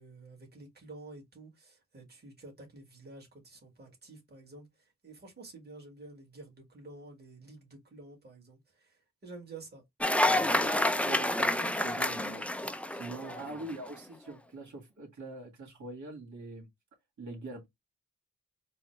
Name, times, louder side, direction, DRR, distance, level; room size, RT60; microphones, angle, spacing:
voice 1, 0.0-9.8 13.1-13.7, right 3 dB, 35° right, 1.7 m, -50 dB
Cheering / Applause, 10.0-13.7, left 1 dB, 5° left, 0.4 m, -29 dB
voice 2, 10.2-12.5 12.9-16.7 17.2-17.6, right 2 dB, 70° right, 1.7 m, -43 dB
4.0 x 2.1 x 3.1 m
cardioid pair, 65°, 30 cm